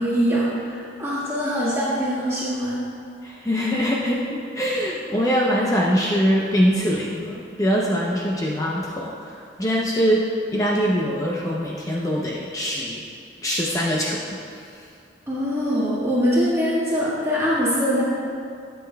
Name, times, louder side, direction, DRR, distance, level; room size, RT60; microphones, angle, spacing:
voice 1, 0.0-2.8 15.3-18.0, equal, 15° right, -9 dB, 1.6 m, -23 dB
voice 2, 3.2-13.0 13.4-14.9, equal, 20° left, -3 dB, 0.6 m, -23 dB
12.5 x 7.8 x 2.2 m, 2.4 s
head